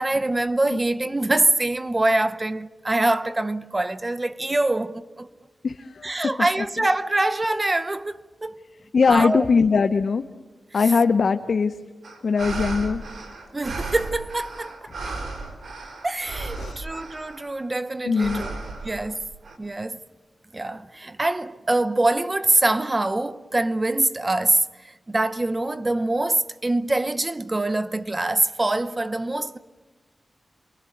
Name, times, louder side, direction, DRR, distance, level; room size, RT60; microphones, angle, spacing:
voice 1, 0.0-5.3 6.0-8.6 9.1-9.5 13.5-14.9 16.0-18.5 18.8-19.3 19.6-20.0 20.5-29.6, right 2 dB, 25° right, 0.8 m, -24 dB
voice 2, 5.6-6.3 8.9-10.2 10.7-11.7 12.2-13.0 16.6-16.8 18.1-18.5, left 5 dB, 65° left, 0.8 m, -21 dB
sound 1, 12.0-17.6 18.1-19.6, right 3 dB, 80° right, 3.9 m, -35 dB
28.0 x 23.0 x 9.3 m
wide cardioid pair, 85°, 0 cm